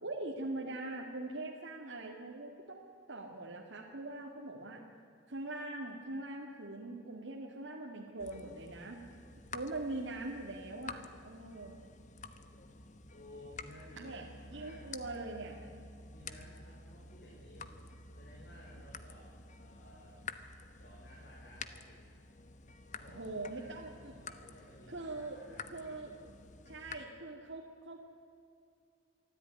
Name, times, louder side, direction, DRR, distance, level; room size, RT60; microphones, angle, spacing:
voice 1, 0.0-4.8 5.3-9.0 9.5-11.7 13.9-15.6 23.1-24.2 24.9-25.4 25.7-26.1 26.7-28.1, right 2 dB, 70° right, -1 dB, 2.1 m, -42 dB
sound 1, 8.2-27.0, left 4 dB, 40° left, 1.1 m, -50 dB
voice 2, 13.1-14.8 16.1-17.8 18.1-20.2 20.8-22.0 22.9-25.9, left 1 dB, 60° left, -4 dB, 5.3 m, -56 dB
24.0 x 13.5 x 9.5 m, 2.6 s
head